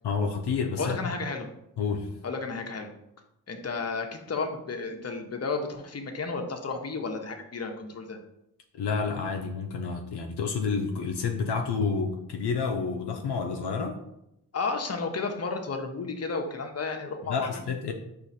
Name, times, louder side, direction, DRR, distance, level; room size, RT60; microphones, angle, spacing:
voice 1, 0.0-1.0 1.8-2.1 8.7-14.0 17.3-17.9, left 5 dB, 75° left, 3 dB, 0.6 m, -29 dB
voice 2, 0.8-1.5 2.2-2.9 3.5-8.2 14.5-17.6, left 4 dB, 40° left, 4 dB, 0.8 m, -32 dB
4.7 x 2.6 x 4.1 m, 0.84 s
cardioid pair, 45°, 40 cm